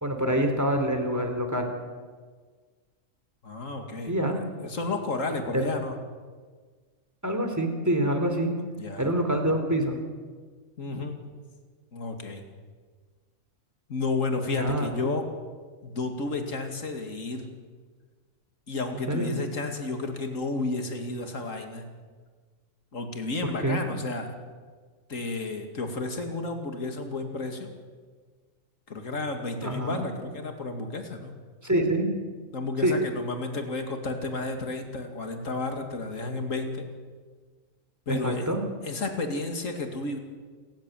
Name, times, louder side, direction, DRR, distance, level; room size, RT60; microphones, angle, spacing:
voice 1, 0.0-1.7 4.1-4.4 5.5-5.7 7.2-8.5 9.0-10.0 14.5-14.9 19.1-19.4 23.6-23.8 29.6-30.0 31.6-32.1 32.8-33.0 38.1-38.6, right 1 dB, 10° right, 5 dB, 3.2 m, -26 dB
voice 2, 3.4-5.9 8.8-9.1 10.8-11.2 11.9-12.4 13.9-15.3 15.8-17.5 18.7-21.8 22.9-24.3 25.1-27.7 28.9-31.3 32.5-36.9 38.1-38.5 38.8-40.2, left 3 dB, 75° left, 5 dB, 2.8 m, -32 dB
28.5 x 14.5 x 9.2 m, 1.5 s
omnidirectional pair, 1.4 m